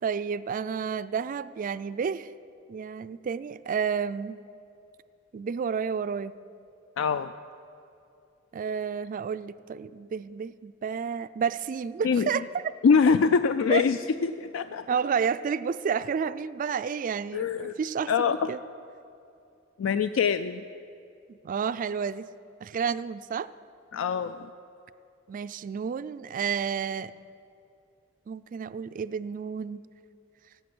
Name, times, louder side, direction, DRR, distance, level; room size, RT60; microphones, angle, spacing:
voice 1, 0.0-2.3 2.7-4.4 5.3-6.4 8.5-12.7 13.7-13.8 14.9-18.6 21.3-22.3 22.6-23.5 25.3-27.1 28.3-29.8, right 6 dB, 40° right, 15 dB, 0.3 m, -31 dB
voice 2, 7.0-7.3 12.0-12.3 12.8-14.0 14.2-14.8 17.3-17.7 18.1-18.5 19.8-20.6 23.9-24.5, left 6 dB, 70° left, 11 dB, 0.3 m, -24 dB
17.0 x 8.3 x 6.1 m, 2.7 s
head